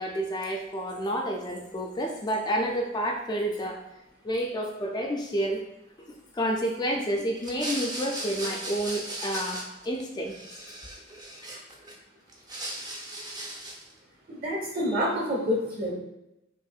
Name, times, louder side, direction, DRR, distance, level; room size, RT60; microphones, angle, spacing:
voice 1, 0.0-3.8 4.2-5.6 6.0-10.3, equal, 20° left, 0 dB, 0.4 m, -30 dB
sound 1, 7.4-10.0 10.3-11.9 12.3-13.9, right 1 dB, 20° right, 0.6 m, -37 dB
voice 2, 14.3-15.9, equal, 50° right, -2 dB, 1.3 m, -28 dB
5.4 x 2.5 x 2.4 m, 0.91 s
head